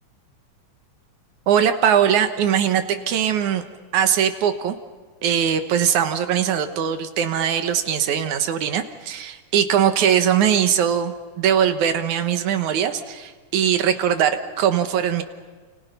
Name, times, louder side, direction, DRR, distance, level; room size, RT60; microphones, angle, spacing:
voice 1, 1.5-3.6 3.9-4.8 5.2-15.2, right 9 dB, 75° right, 8 dB, 2.6 m, -21 dB
30.0 x 29.0 x 5.6 m, 1.4 s
omnidirectional pair, 3.6 m